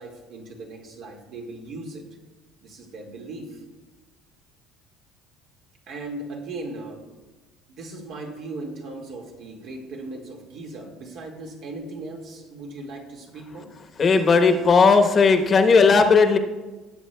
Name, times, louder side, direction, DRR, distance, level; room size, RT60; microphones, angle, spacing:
voice 1, 0.0-2.0 2.6-3.6 5.9-7.1 7.7-13.7, right 2 dB, 65° right, 1 dB, 1.8 m, -38 dB
voice 2, 14.0-16.4, left 4 dB, 35° left, 7 dB, 0.9 m, -16 dB
18.0 x 7.7 x 2.2 m, 1.2 s
supercardioid pair, 105°, 0 cm